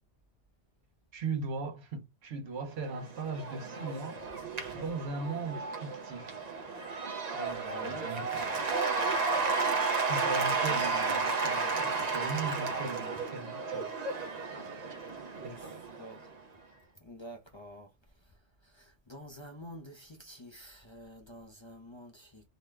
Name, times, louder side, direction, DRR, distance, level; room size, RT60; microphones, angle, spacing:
voice 1, 1.1-4.4 4.7-6.4 7.3-8.7 10.0-14.0 15.4-15.8, right 4 dB, 70° right, 1.1 m, -39 dB
Cheering / Applause / Crowd, 2.8-16.3, right 4 dB, 45° right, 0.7 m, -33 dB
voice 2, 7.5-8.8 15.3-16.3 17.0-22.5, equal, 30° left, 0.6 m, -49 dB
4.0 x 2.2 x 3.2 m
omnidirectional pair, 1.2 m